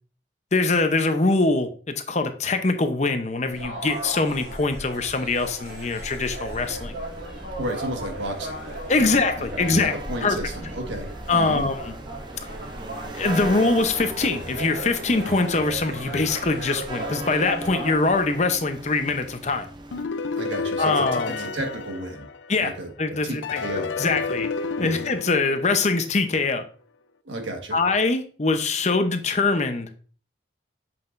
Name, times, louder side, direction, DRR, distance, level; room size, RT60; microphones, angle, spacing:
voice 1, 0.5-7.0 8.9-9.9 10.2-10.4 11.3-11.9 13.1-19.7 20.8-21.5 22.5-22.7 23.0-23.6 24.0-24.5 24.8-26.6 27.7-29.9, left 3 dB, 40° left, 8 dB, 0.7 m, -23 dB
sound 1, 3.5-17.9, right 1 dB, 65° right, 2.5 m, -36 dB
sound 2, 6.6-20.0, right 1 dB, 25° right, 0.6 m, -39 dB
voice 2, 7.6-8.7 9.0-11.7 20.3-22.3 22.6-24.1 24.7-24.9 27.2-27.8, right 1 dB, 85° right, 3 dB, 1.5 m, -33 dB
sound 3, 19.9-22.8 23.4-26.3, left 4 dB, 85° left, 0.5 m, -31 dB
7.6 x 5.7 x 2.5 m, 0.41 s
head